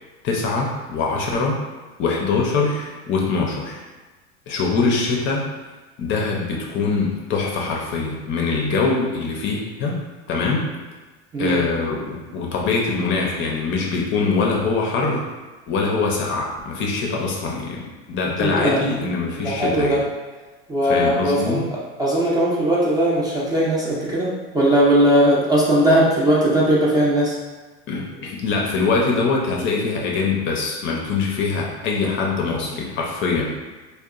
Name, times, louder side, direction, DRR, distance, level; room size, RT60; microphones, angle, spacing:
voice 1, 0.2-1.6 2.0-3.8 4.5-5.5 6.0-10.0 10.3-10.7 11.4-15.3 15.7-20.0 20.9-21.6 27.9-33.6, left 4 dB, 40° left, -1 dB, 0.5 m, -23 dB
voice 2, 11.3-11.6 18.4-18.8 19.4-20.0 20.7-21.6 22.0-27.4, right 1 dB, 10° right, -6 dB, 0.4 m, -19 dB
2.8 x 2.2 x 2.4 m, 1.3 s
supercardioid pair, 115°, 31 cm